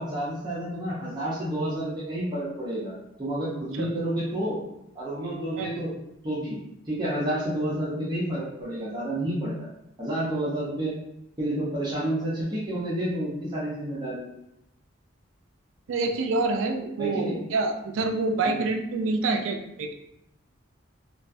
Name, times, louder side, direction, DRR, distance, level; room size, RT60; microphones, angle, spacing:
voice 1, 0.0-4.6 4.9-5.9 6.2-6.6 6.9-9.7 10.0-10.9 11.4-14.2 17.0-17.4 18.5-18.6, right 1 dB, 20° right, -7 dB, 0.5 m, -30 dB
voice 2, 15.9-19.9, right 3 dB, 70° right, 4 dB, 0.3 m, -27 dB
2.3 x 2.3 x 2.5 m, 0.82 s
head